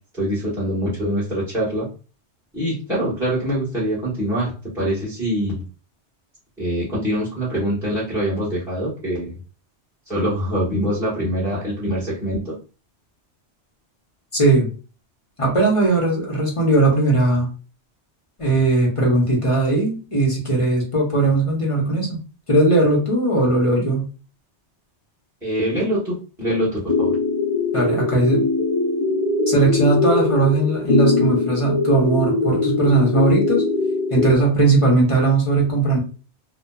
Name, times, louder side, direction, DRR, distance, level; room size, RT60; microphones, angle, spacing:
voice 1, 0.1-1.9 2.5-5.6 6.6-9.4 10.1-12.6 25.4-27.2, equal, 5° right, -9 dB, 1.0 m, -24 dB
voice 2, 14.3-14.7 15.4-17.5 18.4-22.2 22.5-24.1 27.7-28.4 29.5-33.7 34.1-36.0, right 2 dB, 35° left, -2 dB, 0.8 m, -18 dB
sound 1, 26.9-34.4, left 3 dB, 50° left, 0.4 m, -21 dB
2.8 x 2.2 x 2.2 m, 0.35 s
omnidirectional pair, 1.2 m